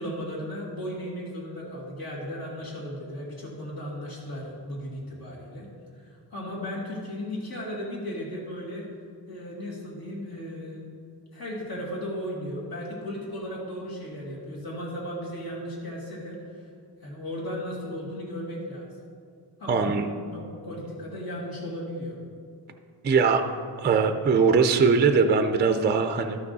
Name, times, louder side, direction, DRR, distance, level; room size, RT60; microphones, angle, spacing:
voice 1, 0.0-5.7 6.0-8.8 9.3-10.8 11.3-16.7 17.0-18.9 19.6-22.1, equal, 55° left, -4 dB, 2.3 m, -36 dB
voice 2, 19.7-20.1 23.0-23.4 23.8-26.4, right 5 dB, 25° right, 7 dB, 0.4 m, -21 dB
13.0 x 6.0 x 4.0 m, 2.4 s
wide cardioid pair, 160°, 42 cm